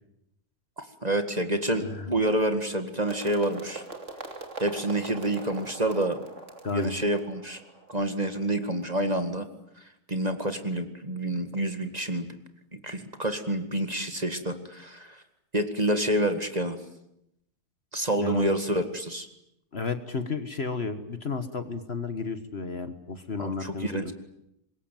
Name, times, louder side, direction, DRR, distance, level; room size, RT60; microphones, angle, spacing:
voice 1, 0.8-3.8 4.6-6.2 6.7-7.6 7.9-9.5 10.1-12.4 12.7-15.2 15.5-16.8 17.9-19.3 23.4-24.1, right 1 dB, 25° right, 8 dB, 1.9 m, -28 dB
voice 2, 1.8-2.1 6.6-7.1 18.2-18.5 19.7-24.1, left 4 dB, 45° left, 10 dB, 1.6 m, -33 dB
sound 1, 3.1-9.0, right 3 dB, 50° right, 3.2 m, -42 dB
25.5 x 21.5 x 9.3 m, 0.82 s
omnidirectional pair, 1.6 m